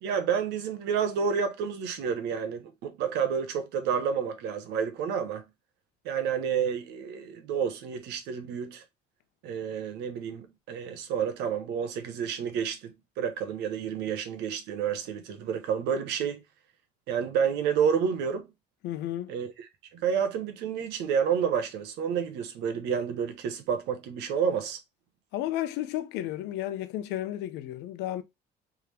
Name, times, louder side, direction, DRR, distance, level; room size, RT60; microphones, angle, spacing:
voice 1, 0.0-5.4 6.0-8.8 9.4-16.4 17.1-18.5 19.3-24.8, right 7 dB, 85° right, 1.0 m, -30 dB
voice 2, 18.8-19.3 25.3-28.2, left 13 dB, 90° left, 0.7 m, -32 dB
3.6 x 3.4 x 3.1 m
cardioid pair, 110°, 17 cm